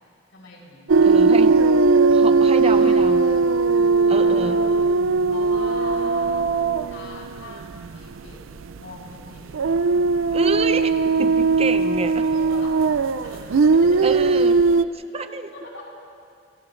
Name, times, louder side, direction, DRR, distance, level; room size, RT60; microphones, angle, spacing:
voice 1, 0.3-1.0 2.6-3.2 4.1-4.8 5.3-8.4 8.7-9.6 12.2-12.8 13.2-14.3 14.9-15.9, left 2 dB, 85° left, -4 dB, 7.3 m, -42 dB
sound 1, 0.9-8.3 8.6-8.8 9.5-14.9, right 4 dB, 85° right, 0.5 m, -19 dB
voice 2, 1.0-1.6 2.1-3.3 4.1-4.6 10.3-12.2 14.0-14.6 14.9-15.5, right 3 dB, 30° right, 9 dB, 0.7 m, -28 dB
29.0 x 27.5 x 3.3 m, 2.3 s
head